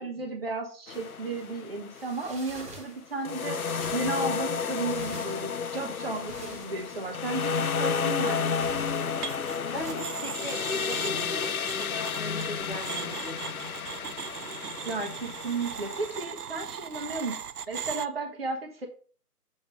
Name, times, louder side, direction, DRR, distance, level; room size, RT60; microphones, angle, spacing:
voice 1, 0.0-3.6 3.9-8.7 14.8-18.9, right 3 dB, 40° right, 2 dB, 1.2 m, -34 dB
sound 1, 0.9-2.3 3.2-16.2, left 6 dB, 65° left, 0.6 m, -32 dB
sound 2, 0.9-9.9, right 2 dB, 10° right, 1.1 m, -49 dB
sound 3, 9.2-9.6 9.8-18.1, right 8 dB, 75° right, 0.6 m, -39 dB
voice 2, 9.7-13.6, left 2 dB, 35° left, 1 dB, 1.7 m, -39 dB
7.3 x 3.5 x 5.5 m, 0.41 s
figure-of-eight pair, 150°, 47 cm